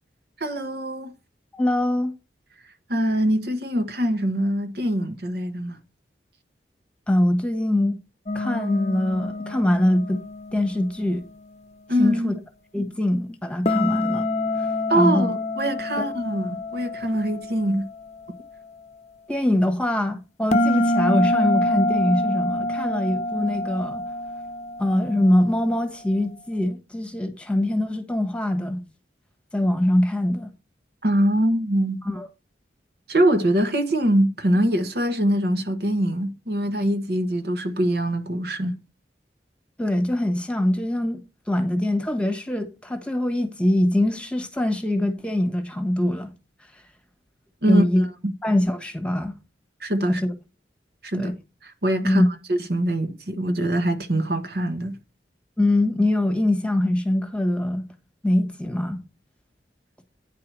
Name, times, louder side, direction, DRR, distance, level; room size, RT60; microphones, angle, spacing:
voice 1, 0.4-1.1 2.9-5.8 11.9-12.3 14.9-17.9 31.0-32.0 33.1-38.8 47.6-48.3 49.8-50.2 51.0-51.3 51.6-52.2 52.5-55.0, right 1 dB, 60° right, 1.3 m, -23 dB
voice 2, 1.5-2.1 7.1-8.0 8.3-10.2 10.5-11.2 12.0-12.4 12.7-14.3 14.6-14.7 14.9-15.3 19.3-24.0 24.8-28.8 29.5-30.5 32.0-32.3 39.8-41.2 41.5-46.3 47.7-48.1 48.4-49.3 50.1-50.3 51.1-51.3 52.0-52.3 55.6-57.9 58.2-59.0, left 1 dB, 5° left, 1.4 m, -23 dB
sound 1, 8.3-11.3 13.6-18.1 20.5-25.0, left 1 dB, 40° left, 0.7 m, -26 dB
9.6 x 4.8 x 6.1 m
head